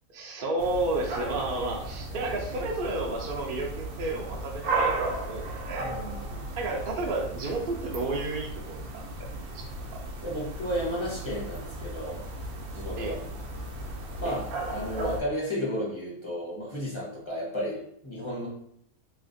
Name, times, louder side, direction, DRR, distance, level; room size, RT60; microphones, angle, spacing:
voice 1, 0.1-5.9 6.6-9.3 9.5-9.7 9.9-10.0 13.0-13.2 14.3-14.4, right 2 dB, 60° right, -1 dB, 0.5 m, -32 dB
sound 1, 0.6-15.2, right 2 dB, 80° right, 1.1 m, -35 dB
voice 2, 5.8-6.4 10.2-12.2 12.7-13.3 14.2-18.5, equal, 30° left, -5 dB, 0.6 m, -33 dB
3.2 x 2.8 x 2.6 m, 0.71 s
omnidirectional pair, 1.5 m